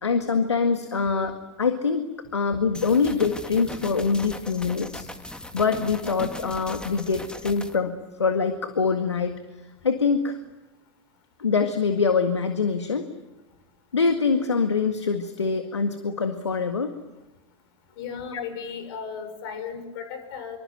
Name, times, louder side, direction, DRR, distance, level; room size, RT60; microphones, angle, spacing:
voice 1, 0.0-9.4 9.8-10.4 11.4-13.1 13.9-16.9 18.3-18.4, left 5 dB, 85° left, 8 dB, 1.8 m, -24 dB
sound 1, 2.7-7.8, left 1 dB, 5° left, 2.0 m, -38 dB
voice 2, 18.0-20.6, left 6 dB, 60° left, 8 dB, 6.8 m, -35 dB
26.0 x 24.5 x 9.3 m, 1.1 s
figure-of-eight pair, 90°, 14 cm